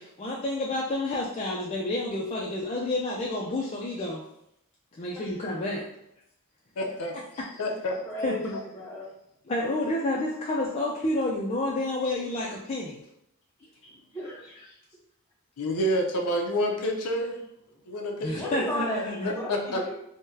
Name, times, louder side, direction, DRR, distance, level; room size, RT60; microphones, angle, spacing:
voice 1, 0.0-4.2 5.0-5.9 7.3-7.5 8.2-8.5 9.5-13.0 18.2-19.3, left 2 dB, 30° left, -4 dB, 0.4 m, -29 dB
voice 2, 6.8-7.2 7.6-8.1 15.6-17.4 17.9-18.6 19.2-19.9, equal, 85° left, 1 dB, 0.6 m, -28 dB
voice 3, 8.0-9.1 13.9-14.4 18.3-19.9, equal, 10° left, -4 dB, 0.8 m, -35 dB
3.7 x 2.1 x 2.7 m, 0.79 s
head